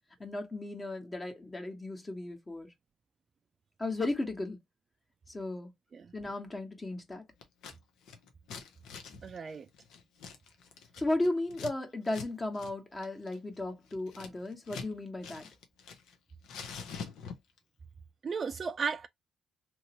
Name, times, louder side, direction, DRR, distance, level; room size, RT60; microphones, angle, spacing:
voice 1, 0.2-2.7 3.8-4.6 5.3-5.7 6.1-7.2 11.0-15.4, left 2 dB, 20° left, 1.1 m, -35 dB
Scissors, 7.4-7.8 8.0-11.7 12.1-12.3 12.5-12.7 13.0-14.9 15.2-16.1 16.4-17.6, left 6 dB, 85° left, 0.8 m, -45 dB
voice 2, 9.2-9.7 18.2-19.1, right 5 dB, 45° right, 0.3 m, -34 dB
2.9 x 2.7 x 2.9 m
cardioid pair, 90°, 0 cm